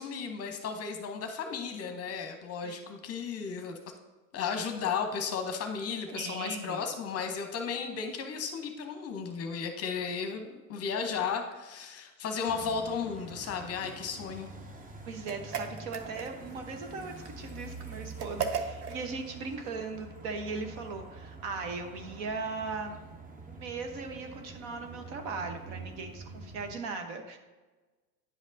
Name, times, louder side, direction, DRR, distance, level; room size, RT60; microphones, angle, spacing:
voice 1, 0.0-3.8 4.3-14.5, left 6 dB, 30° left, 5 dB, 0.9 m, -34 dB
voice 2, 6.1-6.8 15.1-23.1 23.5-27.4, right 4 dB, 55° right, 5 dB, 1.1 m, -38 dB
sound 1, 12.5-26.7, right 3 dB, 20° right, 0.7 m, -46 dB
sound 2, 15.2-16.6 18.2-19.0, right 6 dB, 80° right, 0.9 m, -35 dB
9.7 x 5.1 x 2.7 m, 1.2 s
hypercardioid pair, 90°, 47 cm